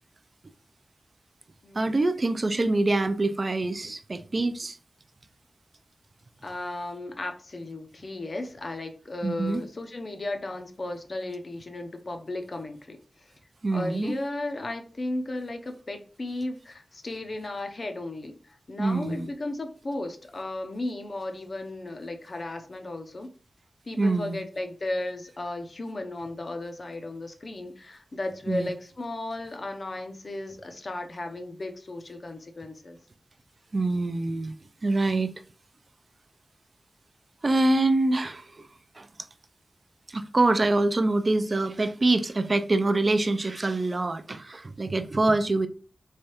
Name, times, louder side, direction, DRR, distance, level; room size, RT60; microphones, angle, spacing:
voice 1, 1.7-4.8 9.2-9.6 13.6-14.2 18.8-19.3 24.0-24.4 28.5-28.7 33.7-34.5 34.8-35.3 37.4-38.7 39.0-39.1 40.1-45.7, right 2 dB, 45° right, 0.3 m, -25 dB
voice 2, 6.4-13.3 13.7-23.3 23.9-33.0, left 2 dB, 50° left, 0.5 m, -35 dB
3.5 x 3.2 x 2.8 m
wide cardioid pair, 105°, 0 cm